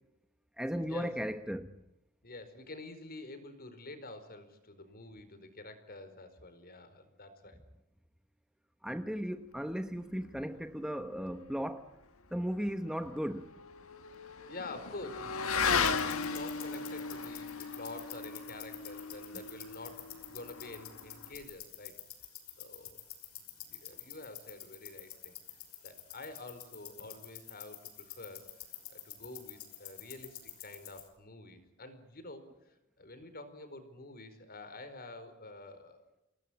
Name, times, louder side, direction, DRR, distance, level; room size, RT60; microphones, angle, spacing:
voice 1, 0.6-1.7 8.8-11.9 12.3-13.5, equal, 5° right, 0.9 m, -36 dB
voice 2, 2.2-7.6 14.5-22.0 22.6-23.0 23.7-25.3 25.8-28.4 28.9-36.0, left 2 dB, 45° left, 4.6 m, -48 dB
Motorcycle / Accelerating revving vroom, 12.7-21.4, left 5 dB, 70° left, 1.8 m, -36 dB
sound 1, 15.7-31.1, left 12 dB, 85° left, 5.9 m, -49 dB
28.5 x 20.0 x 8.7 m
head